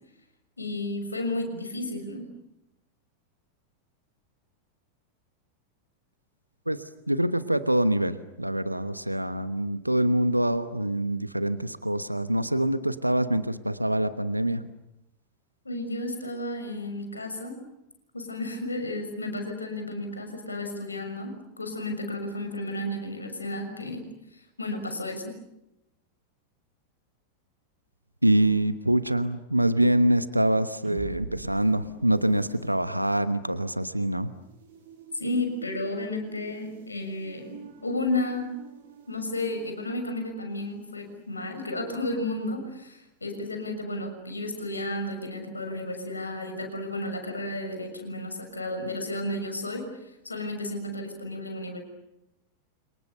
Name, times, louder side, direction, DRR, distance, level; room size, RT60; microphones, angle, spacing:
voice 1, 0.6-2.3 15.6-17.6 18.1-25.3 35.1-38.5 39.1-51.8, left 1 dB, 80° left, 6 dB, 6.4 m, -33 dB
voice 2, 7.1-14.6 28.2-34.3, right 1 dB, 85° right, 13 dB, 1.1 m, -25 dB
sound 1, 30.5-41.0, right 5 dB, 55° right, 7.1 m, -47 dB
30.0 x 27.0 x 6.9 m, 0.89 s
figure-of-eight pair, 90°, 0 cm